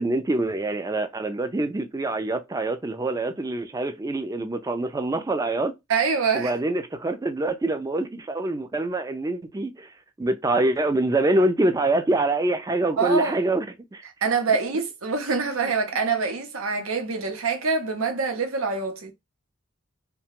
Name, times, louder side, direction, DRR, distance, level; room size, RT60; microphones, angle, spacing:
voice 1, 0.0-5.7 6.3-9.9 10.2-13.7 13.9-14.0 14.7-14.8, right 2 dB, 15° right, 0.3 m, -25 dB
voice 2, 5.9-6.5 13.0-13.3 14.2-19.1, right 4 dB, 80° right, 0.7 m, -25 dB
2.8 x 2.2 x 2.8 m
head